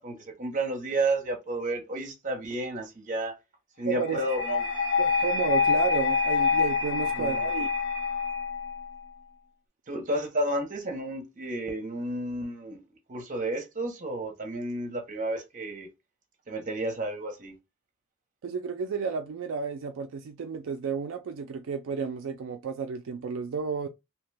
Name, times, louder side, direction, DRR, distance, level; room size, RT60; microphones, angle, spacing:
voice 1, 0.0-3.4 3.8-4.7 6.9-7.4 9.9-12.8 13.1-15.9 16.5-17.5, right 1 dB, 35° right, 0.7 m, -31 dB
voice 2, 3.8-4.2 5.0-7.7 18.4-23.9, right 6 dB, 65° right, 0.3 m, -32 dB
sound 1, 4.0-9.0, left 5 dB, 75° left, 1.2 m, -26 dB
2.8 x 2.2 x 3.2 m
head